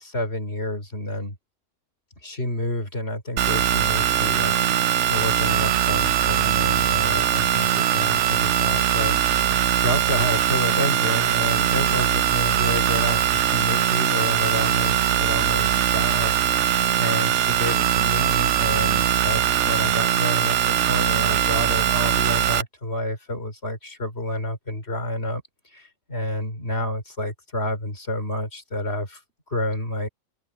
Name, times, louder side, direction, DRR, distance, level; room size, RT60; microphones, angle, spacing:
voice 1, 0.0-1.4 2.2-9.4 9.7-16.7 17.0-25.4 25.7-29.2 29.5-30.1, left 1 dB, 45° left, 4.7 m, -29 dB
sound 1, 3.4-22.6, right 10 dB, 65° right, 0.9 m, -21 dB
open air
omnidirectional pair, 1.5 m